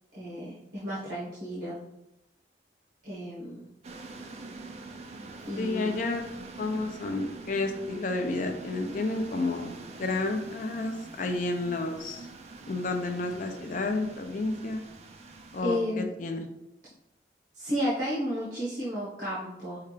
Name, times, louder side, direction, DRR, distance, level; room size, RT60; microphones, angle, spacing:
voice 1, 0.1-1.8 3.0-3.6 5.5-5.9 15.6-16.1 17.5-19.8, equal, 75° right, -8 dB, 1.3 m, -32 dB
sound 1, 3.8-15.6, right 3 dB, 35° right, 0.4 m, -45 dB
voice 2, 5.6-6.2 6.6-9.7 10.0-12.3 12.7-14.8 15.5-16.5, left 2 dB, 45° left, 5 dB, 0.4 m, -31 dB
5.5 x 2.4 x 3.2 m, 0.87 s
head